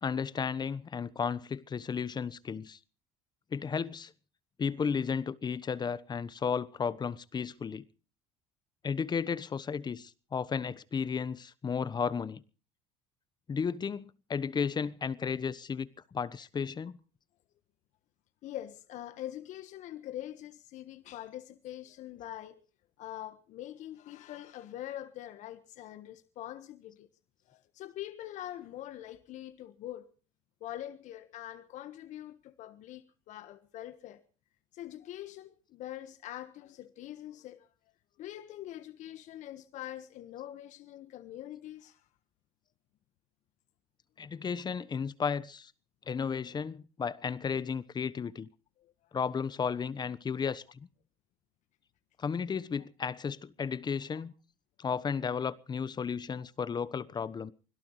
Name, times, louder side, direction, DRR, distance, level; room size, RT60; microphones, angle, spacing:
voice 1, 0.0-2.8 3.5-4.1 4.6-7.9 8.8-12.4 13.5-15.9 16.1-17.0 44.2-45.7 46.1-48.5 49.1-50.9 52.2-54.3 54.8-57.5, left 6 dB, 30° left, 1.1 m, -33 dB
voice 2, 18.4-22.6 23.0-27.1 27.5-30.1 30.6-34.2 34.7-37.7 38.2-42.0 48.8-48.9, left 13 dB, 60° left, 1.4 m, -44 dB
25.0 x 17.5 x 3.2 m
supercardioid pair, 80°, 14 cm